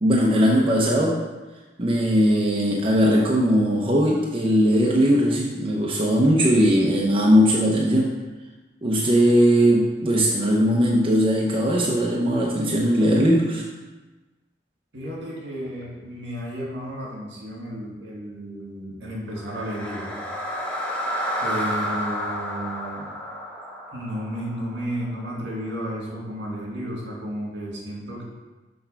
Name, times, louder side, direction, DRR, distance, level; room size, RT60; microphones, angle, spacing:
voice 1, 0.0-1.2 1.8-8.2 8.8-13.7, equal, 30° right, -3 dB, 0.8 m, -19 dB
voice 2, 14.9-20.2 21.4-23.1 23.9-28.2, equal, 70° right, -3 dB, 2.2 m, -33 dB
sound 1, 19.3-25.5, equal, 5° left, 1.1 m, -31 dB
6.4 x 4.5 x 5.7 m, 1.2 s
head